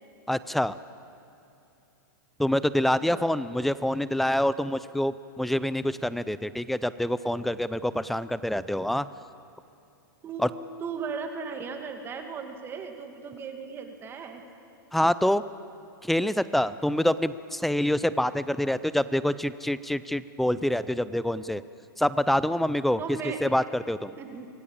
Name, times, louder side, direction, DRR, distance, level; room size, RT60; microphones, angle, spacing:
voice 1, 0.3-0.8 2.4-9.1 10.4-10.5 14.9-15.4 16.0-21.6 22.0-23.0 23.4-24.1, left 1 dB, ahead, 15 dB, 0.5 m, -26 dB
voice 2, 10.2-14.4 23.0-23.4 24.2-24.5, right 5 dB, 20° right, 5 dB, 2.2 m, -37 dB
25.5 x 18.5 x 8.7 m, 2.8 s
supercardioid pair, 150°, 11 cm